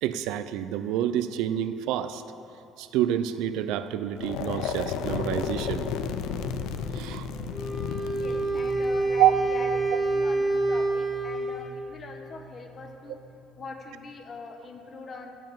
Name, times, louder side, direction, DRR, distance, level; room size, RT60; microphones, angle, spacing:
voice 1, 0.0-2.2 2.8-5.8 6.9-7.3 9.2-9.3, right 12 dB, 80° right, 12 dB, 0.5 m, -27 dB
sound 1, 4.2-10.1, left 7 dB, 70° left, 0.6 m, -33 dB
sound 2, 4.5-14.2, right 1 dB, 40° right, 1.4 m, -43 dB
Wind instrument woodwind instrument, 7.5-11.9, right 2 dB, 10° left, 0.8 m, -27 dB
voice 2, 8.2-13.2 13.6-15.3, left 4 dB, 30° left, 4 dB, 1.0 m, -42 dB
14.0 x 5.4 x 7.4 m, 2.9 s
cardioid pair, 170°, 0 cm